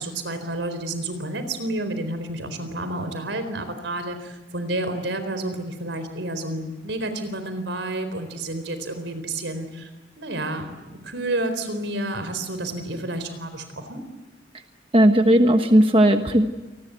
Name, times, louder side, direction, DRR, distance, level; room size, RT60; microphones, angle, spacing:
voice 1, 0.0-9.9 10.2-14.0, right 1 dB, 85° right, 10 dB, 4.1 m, -30 dB
voice 2, 14.9-16.5, right 1 dB, 30° right, 6 dB, 1.2 m, -16 dB
28.5 x 20.0 x 8.1 m, 1.1 s
head